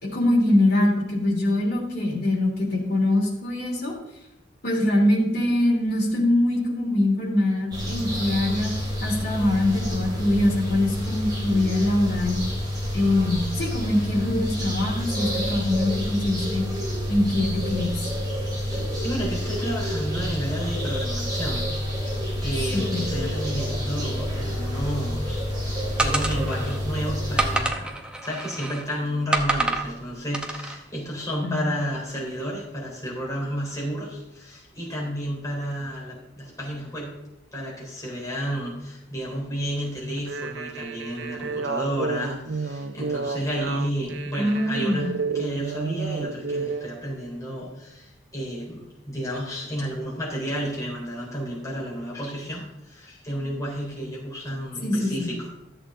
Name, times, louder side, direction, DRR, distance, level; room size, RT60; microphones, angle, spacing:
voice 1, 0.0-4.0 4.6-8.7 9.0-12.4 12.9-16.6 17.1-18.1 22.7-23.0 31.4-31.6 44.4-45.2 54.8-55.3, left 1 dB, 55° left, -2 dB, 2.9 m, -23 dB
sound 1, 7.7-27.6, equal, 20° right, 3.2 m, -28 dB
voice 2, 18.6-21.7 22.0-37.2 37.5-55.5, equal, 15° left, -5 dB, 3.7 m, -31 dB
sound 2, 26.0-26.8 27.4-28.8 29.3-29.9 30.3-30.8, right 2 dB, 5° right, 0.8 m, -27 dB
sound 3, 40.2-46.9, right 4 dB, 65° right, 0.6 m, -31 dB
13.5 x 7.9 x 3.8 m, 0.88 s
head